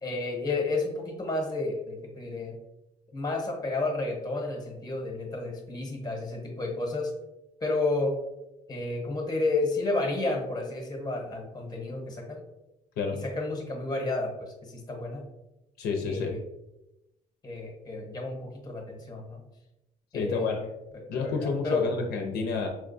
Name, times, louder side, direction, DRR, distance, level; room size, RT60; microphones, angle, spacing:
voice 1, 0.0-2.5 3.1-7.1 7.6-8.1 8.7-12.4 13.2-15.2 16.1-16.4 17.4-19.4 20.1-21.9, left 2 dB, 25° left, 1 dB, 0.9 m, -31 dB
voice 2, 15.8-16.3 20.1-20.6 21.1-22.7, left 4 dB, 70° left, 3 dB, 0.5 m, -29 dB
4.3 x 2.3 x 2.5 m, 0.92 s
cardioid pair, 110°, 17 cm